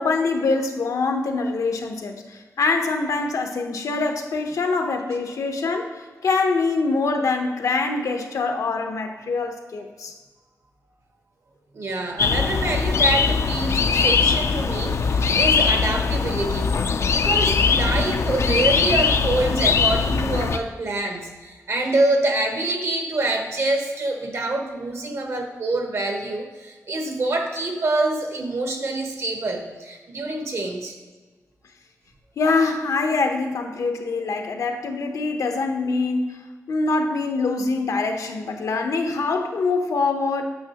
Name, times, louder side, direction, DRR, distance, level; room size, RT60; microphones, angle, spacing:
voice 1, 0.0-10.1 32.4-36.4 36.7-40.4, left 3 dB, 80° left, 4 dB, 0.8 m, -24 dB
voice 2, 11.7-16.7 17.1-30.9, right 2 dB, 55° right, 3 dB, 1.0 m, -26 dB
sound 1, 12.2-20.6, left 5 dB, 60° left, 0.4 m, -21 dB
8.5 x 6.2 x 2.9 m, 1.4 s
wide cardioid pair, 140°, 6 cm